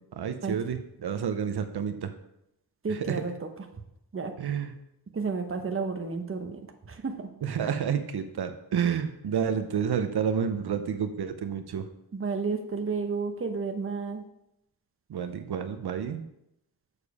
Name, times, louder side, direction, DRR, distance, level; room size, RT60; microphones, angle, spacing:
voice 1, 0.1-2.1 2.9-3.2 4.4-4.7 7.4-11.8 15.1-16.2, right 7 dB, 75° right, 8 dB, 0.7 m, -30 dB
voice 2, 2.8-3.5 4.1-4.3 5.1-6.6 6.9-7.3 12.1-14.2, right 4 dB, 35° right, 5 dB, 0.8 m, -31 dB
7.1 x 6.7 x 4.8 m, 0.81 s
wide cardioid pair, 175°, 39 cm